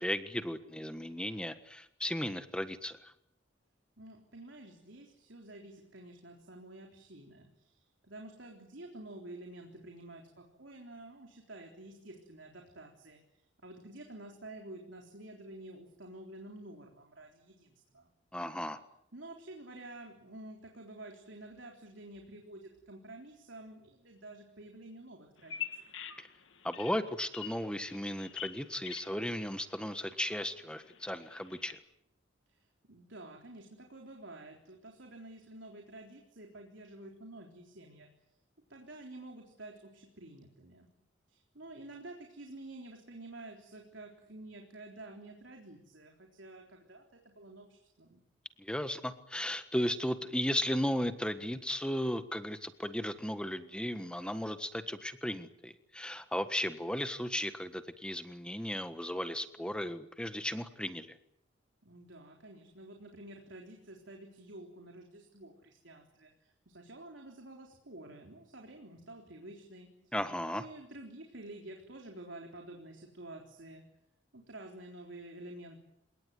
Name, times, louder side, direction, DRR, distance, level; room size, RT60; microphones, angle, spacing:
voice 1, 0.0-3.1 18.3-18.8 26.2-26.3 26.6-31.8 48.6-61.2 70.1-70.7, left 1 dB, 5° left, 10 dB, 1.5 m, -35 dB
voice 2, 4.0-13.2 13.6-18.1 19.1-25.9 32.5-38.1 38.7-40.9 41.3-48.2 61.8-70.1 70.5-73.8 74.3-75.8, right 1 dB, 75° right, 1 dB, 3.8 m, -50 dB
Bird vocalization bird call bird song, 25.4-31.7, left 10 dB, 80° left, 2.4 m, -47 dB
29.5 x 18.5 x 9.4 m, 0.80 s
head